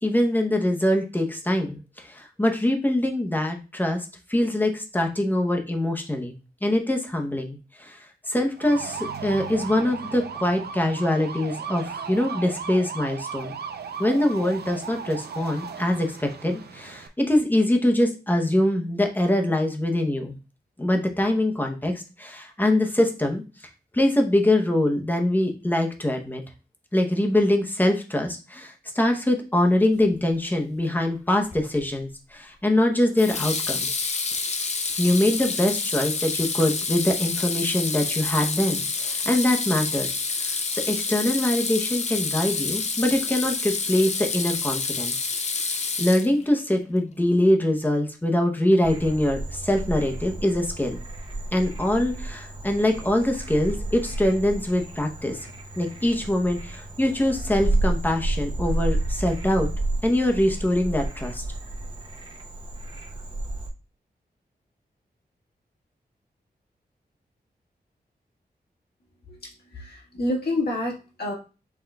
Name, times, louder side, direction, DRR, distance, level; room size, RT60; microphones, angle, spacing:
voice 1, 0.0-6.4 6.6-8.0 8.3-13.6 14.0-20.4 20.8-23.4 23.9-26.4 26.9-34.0 35.0-40.1 40.4-45.1 46.0-51.0 51.5-55.4 55.8-59.7 60.0-61.4, left 1 dB, 10° left, 3 dB, 0.7 m, -23 dB
sound 1, 8.6-17.1, right 6 dB, 75° right, 0.5 m, -36 dB
Water tap faucet / Sink (filling or washing), 31.5-31.9 33.2-46.6, left 4 dB, 40° left, 0.5 m, -28 dB
Frog, 48.8-63.7, right 2 dB, 30° right, 0.6 m, -31 dB
voice 2, 69.3-71.3, left 1 dB, 70° left, -2 dB, 1.6 m, -29 dB
5.7 x 3.8 x 2.3 m, 0.32 s
wide cardioid pair, 150°, 17 cm